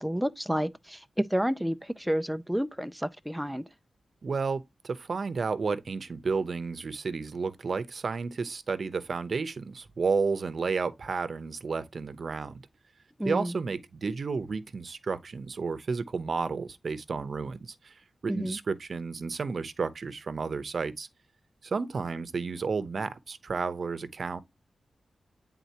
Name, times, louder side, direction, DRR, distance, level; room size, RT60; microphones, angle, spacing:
voice 1, 0.0-3.7 13.2-13.5 18.3-18.6, equal, 5° right, 0.4 m, -30 dB
voice 2, 4.2-12.6 13.2-18.0 18.2-21.1 21.6-24.4, right 4 dB, 60° right, 0.7 m, -32 dB
9.3 x 3.9 x 2.8 m
wide cardioid pair, 85°, 0 cm